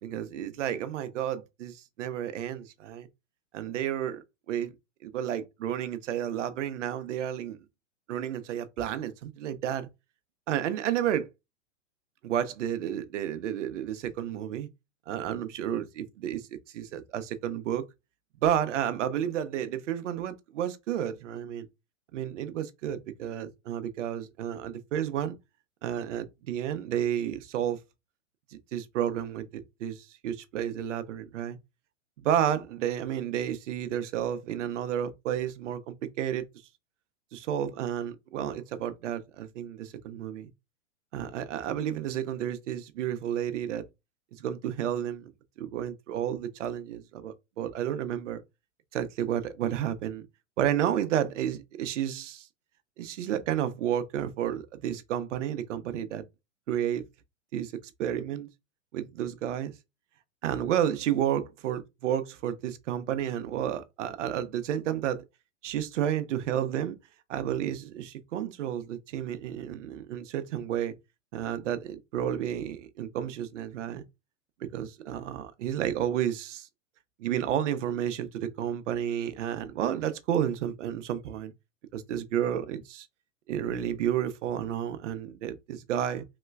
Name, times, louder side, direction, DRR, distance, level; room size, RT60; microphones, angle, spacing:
voice 1, 0.0-3.1 3.5-4.7 5.0-7.6 8.1-9.9 10.5-11.3 12.2-14.7 15.1-16.5 16.7-17.9 18.4-21.7 22.1-25.3 25.8-27.8 28.5-31.6 32.2-36.5 37.3-40.5 41.1-43.8 44.4-45.3 45.6-48.4 48.9-50.3 50.6-52.5 53.0-56.2 56.7-57.0 57.5-57.7 58.0-58.5 58.9-59.7 60.4-65.2 65.6-67.0 67.3-70.9 71.3-74.0 74.6-76.7 77.2-81.5 81.9-83.1 83.5-86.2, right 10 dB, 65° right, 0.6 m, -31 dB
3.2 x 2.9 x 2.3 m
hypercardioid pair, 140°, 38 cm